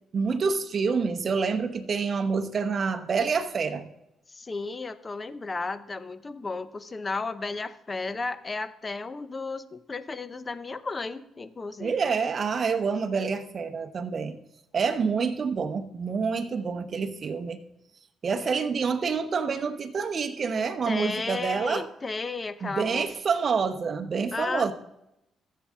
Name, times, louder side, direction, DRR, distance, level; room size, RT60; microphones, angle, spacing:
voice 1, 0.1-3.9 11.8-14.4 14.7-17.6 18.2-21.9 22.6-24.7, right 5 dB, 45° right, 7 dB, 0.9 m, -27 dB
voice 2, 4.3-12.2 20.9-23.1 24.3-24.7, left 3 dB, 30° left, 13 dB, 0.6 m, -34 dB
14.0 x 7.6 x 3.6 m, 0.86 s
cardioid pair, 90°, 0 cm